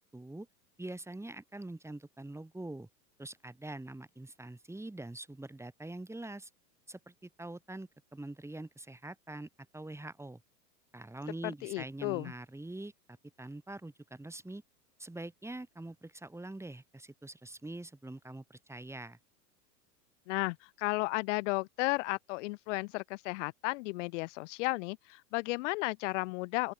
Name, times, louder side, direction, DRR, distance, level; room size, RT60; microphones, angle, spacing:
voice 1, 0.1-0.5 0.8-2.9 3.2-6.5 6.9-10.4 10.9-14.6 15.0-19.2, right 2 dB, 5° right, 5.6 m, -44 dB
voice 2, 11.4-12.3 20.3-26.7, left 24 dB, 50° left, 0.6 m, -34 dB
open air
hypercardioid pair, 100°, 49 cm